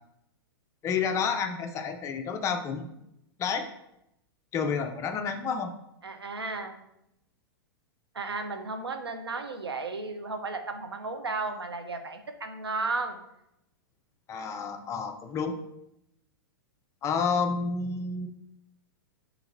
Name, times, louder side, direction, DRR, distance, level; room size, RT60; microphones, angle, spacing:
voice 1, 0.8-3.0 3.4-3.7 4.5-5.7 14.3-15.6 17.0-18.3, left 5 dB, 25° left, 6 dB, 0.4 m, -30 dB
voice 2, 6.0-6.8 8.1-13.2, right 3 dB, 90° right, 6 dB, 0.4 m, -34 dB
2.9 x 2.9 x 3.8 m, 0.82 s
figure-of-eight pair, 105°, 13 cm